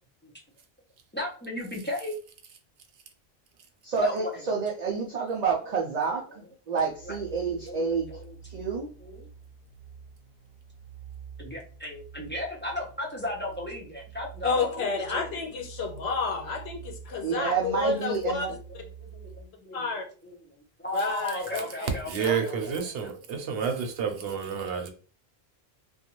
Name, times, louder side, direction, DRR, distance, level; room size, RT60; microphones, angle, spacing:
voice 1, 1.1-2.1 4.0-4.3 7.1-7.2 7.4-8.3 9.0-9.2 11.4-15.4 18.5-18.6 19.0-22.9, left 2 dB, 15° left, 0.5 m, -36 dB
voice 2, 3.8-8.1 8.4-8.9 17.2-18.5, right 5 dB, 55° right, 0.5 m, -29 dB
sound 1, 6.9-19.4, right 7 dB, 40° left, 0.8 m, -47 dB
voice 3, 14.4-18.5 19.7-20.0 20.9-21.9 22.2-22.4, left 4 dB, 85° left, 0.9 m, -30 dB
voice 4, 22.1-24.9, right 7 dB, 70° right, 0.9 m, -30 dB
2.5 x 2.2 x 2.9 m
omnidirectional pair, 1.1 m